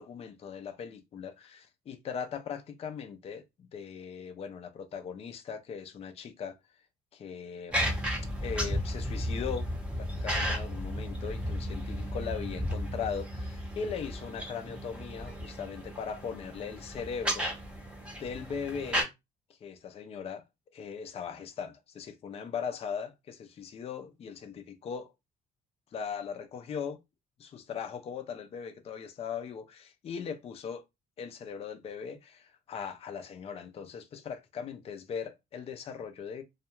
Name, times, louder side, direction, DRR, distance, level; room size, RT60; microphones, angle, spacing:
voice 1, 0.0-6.5 7.1-7.9 8.4-9.7 9.9-17.5 18.2-19.1 19.6-20.4 20.7-25.1 25.9-27.0 27.4-30.8 31.2-36.4, left 6 dB, 35° left, 0.4 m, -39 dB
sound 1, 7.7-19.0, equal, 5° right, 0.8 m, -34 dB
2.3 x 2.1 x 2.9 m
cardioid pair, 110°, 17 cm